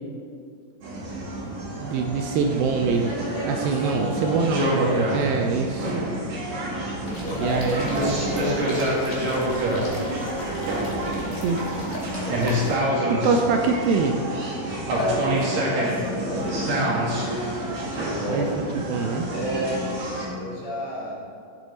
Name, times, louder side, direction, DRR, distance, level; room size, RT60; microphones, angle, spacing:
sound 1, 0.8-20.3, right 1 dB, 55° right, 2.7 m, -27 dB
voice 1, 1.8-3.1 3.4-5.9 7.4-8.1 11.3-11.7 13.1-14.2 18.3-19.3, right 4 dB, 80° right, 3 dB, 2.3 m, -24 dB
voice 2, 3.2-5.1 7.1-10.3 10.9-13.5 14.9-18.5 19.2-19.8 20.3-21.2, equal, 40° left, -7 dB, 2.5 m, -32 dB
sound 2, 7.0-12.8, left 1 dB, 25° left, 2.1 m, -38 dB
16.0 x 8.2 x 4.1 m, 2.4 s
omnidirectional pair, 4.6 m